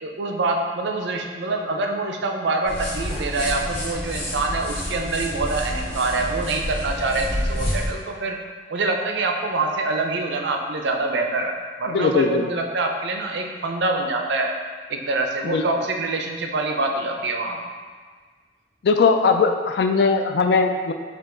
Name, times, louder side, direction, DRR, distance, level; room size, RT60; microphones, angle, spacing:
voice 1, 0.0-8.4 8.7-11.5 11.8-14.5 14.9-17.6, right 2 dB, 70° right, 3 dB, 0.5 m, -25 dB
sound 1, 2.6-7.9, equal, 35° left, 1.5 m, -29 dB
voice 2, 11.9-12.4 15.4-15.6 18.8-20.9, left 4 dB, 60° left, 5 dB, 0.3 m, -19 dB
5.7 x 2.4 x 3.7 m, 1.5 s
head